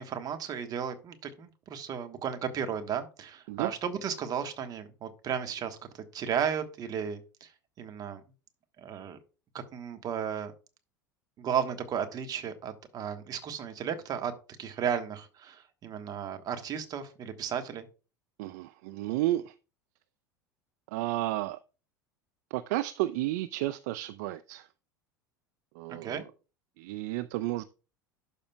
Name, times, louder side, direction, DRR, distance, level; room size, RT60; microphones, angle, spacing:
voice 1, 0.0-7.5 7.8-8.2 8.8-9.2 9.7-10.5 11.4-14.3 14.6-17.9 25.9-26.2, right 8 dB, 35° right, 1.3 m, -34 dB
voice 2, 18.4-19.5 20.9-21.6 22.5-24.7 25.7-26.2 26.8-27.6, right 16 dB, 55° right, 0.4 m, -32 dB
12.0 x 5.0 x 2.3 m
figure-of-eight pair, 75°, 11 cm